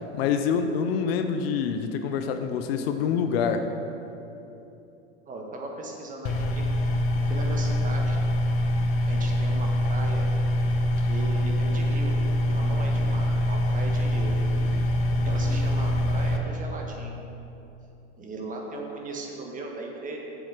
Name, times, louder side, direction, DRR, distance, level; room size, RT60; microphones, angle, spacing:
voice 1, 0.1-3.7, left 6 dB, 60° left, 7 dB, 0.8 m, -26 dB
voice 2, 5.2-6.6 7.2-8.2 9.1-10.3 11.0-12.2 12.5-14.3 14.6-14.8 15.2-17.2 18.2-20.2, right 2 dB, 25° right, 0 dB, 1.6 m, -37 dB
sound 1, 6.2-16.4, left 1 dB, 40° left, 1.1 m, -24 dB
7.7 x 7.2 x 6.2 m, 2.9 s
hypercardioid pair, 110°, 34 cm